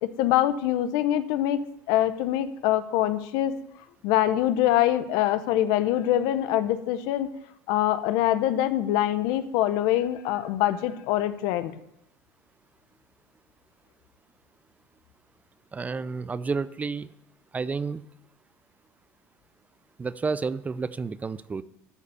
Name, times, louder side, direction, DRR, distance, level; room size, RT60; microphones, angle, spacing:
voice 1, 0.0-3.6 4.0-7.3 7.7-11.8, left 12 dB, 75° left, 12 dB, 0.8 m, -24 dB
voice 2, 15.7-17.1 17.5-18.0 20.0-21.6, right 4 dB, 20° right, 16 dB, 0.4 m, -30 dB
12.5 x 4.2 x 8.2 m, 0.83 s
supercardioid pair, 105°, 7 cm